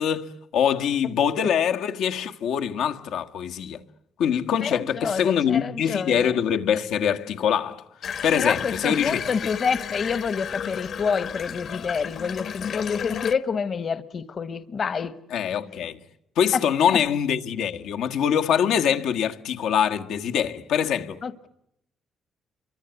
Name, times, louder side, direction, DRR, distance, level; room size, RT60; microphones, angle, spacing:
voice 1, 0.0-3.8 4.2-7.8 8.2-9.2 15.3-16.0 16.4-21.2, left 8 dB, 85° left, 1.6 m, -24 dB
voice 2, 1.0-1.5 4.6-6.3 8.3-15.2 16.5-16.6 16.9-17.0 21.2-21.5, left 6 dB, 40° left, 1.1 m, -28 dB
Water tap faucet / Bathtub (filling or washing), 8.0-13.3, left 8 dB, 55° left, 1.3 m, -33 dB
29.5 x 24.5 x 8.1 m
cardioid pair, 140°, 0 cm